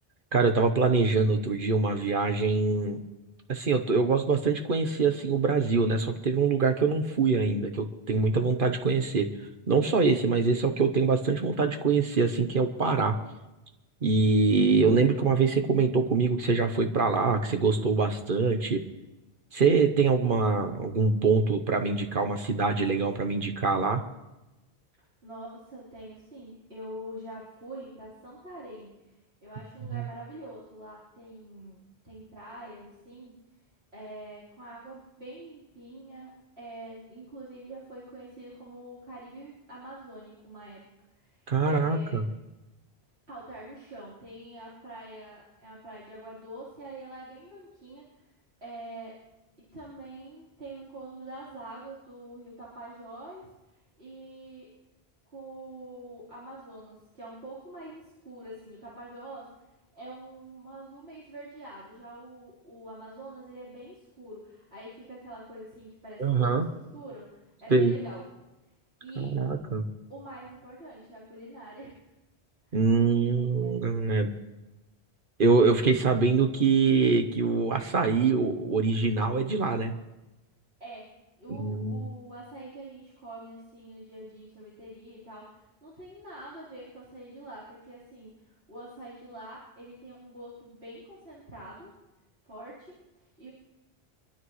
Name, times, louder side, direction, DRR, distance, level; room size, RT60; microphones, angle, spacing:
voice 1, 0.3-3.0 3.5-9.3 9.7-13.1 14.0-18.8 19.5-24.0 41.5-42.2 66.2-66.7 67.7-67.9 69.2-69.8 72.7-74.3 75.4-79.9 81.6-82.1, right 4 dB, 60° right, 6 dB, 1.2 m, -24 dB
voice 2, 25.2-29.1 29.4-33.4 33.9-42.2 43.3-48.3 48.6-49.2 49.7-54.7 55.3-59.7 59.9-68.2 69.0-69.3 70.1-72.0 72.7-72.8 73.6-73.7 80.8-91.9 92.4-93.5, right 1 dB, 90° right, -9 dB, 4.3 m, -45 dB
25.0 x 12.5 x 3.2 m, 1.0 s
omnidirectional pair, 1.0 m